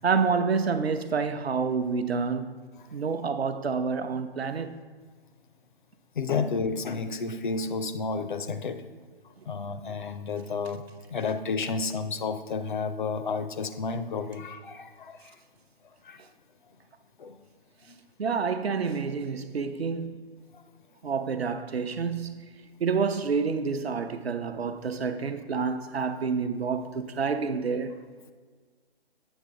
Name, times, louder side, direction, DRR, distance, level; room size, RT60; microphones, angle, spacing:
voice 1, 0.0-2.5 2.9-4.7 18.2-20.3 21.0-22.5 22.8-28.0, right 5 dB, 75° right, 0.7 m, -28 dB
voice 2, 6.2-8.8 9.5-10.8 11.1-15.2 16.1-16.2 17.2-17.3, left 4 dB, 50° left, 0.5 m, -31 dB
8.0 x 6.3 x 3.7 m
figure-of-eight pair, 140°, 31 cm